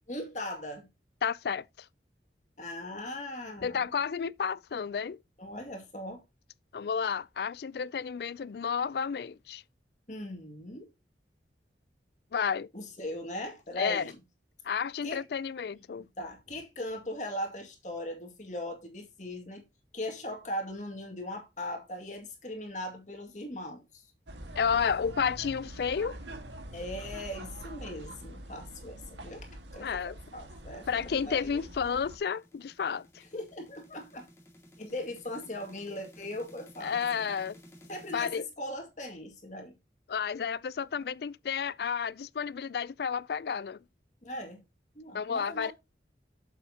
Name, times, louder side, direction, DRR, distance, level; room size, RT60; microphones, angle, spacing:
voice 1, 0.1-0.9 2.6-3.9 5.4-6.2 10.1-10.9 12.7-14.2 15.0-15.2 16.2-19.6 19.9-24.0 26.7-29.9 30.3-31.6 33.3-34.3 34.8-37.0 37.9-39.7 44.2-44.6 45.0-45.7, left 1 dB, 40° left, 2.2 m, -39 dB
voice 2, 1.2-1.6 3.6-5.2 6.7-9.6 12.3-12.7 13.8-14.1 14.6-16.0 24.6-26.2 29.8-30.1 30.9-33.1 36.8-37.6 38.1-38.5 40.1-43.8 45.1-45.7, left 6 dB, 60° left, 0.4 m, -31 dB
sound 1, 24.3-32.2, right 1 dB, 90° right, 1.8 m, -45 dB
sound 2, 30.2-38.3, equal, 15° left, 2.0 m, -55 dB
8.0 x 7.3 x 2.8 m
head